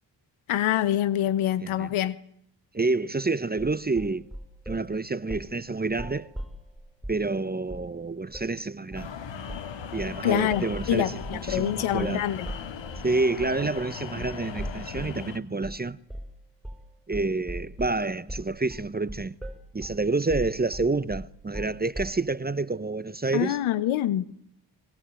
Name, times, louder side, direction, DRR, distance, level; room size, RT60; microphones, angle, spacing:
voice 1, 0.5-2.2 10.2-12.5 23.3-24.2, left 12 dB, 85° left, 1.3 m, -25 dB
voice 2, 2.7-4.3 4.7-6.3 7.1-9.1 9.9-12.2 13.0-16.0 17.1-19.3 19.7-23.6, right 3 dB, 20° right, 0.9 m, -28 dB
sound 1, 3.6-4.9 5.3-5.6 5.9-7.3 7.7-8.0 8.3-8.5 8.9-9.2 9.5-9.7 10.0-15.2 15.6-15.8 16.1-16.4 16.6-16.9 17.1-22.3, equal, ahead, 5.7 m, -39 dB
sound 2, 8.9-15.4, left 6 dB, 65° left, 2.5 m, -38 dB
25.0 x 20.0 x 9.1 m
supercardioid pair, 50°, 48 cm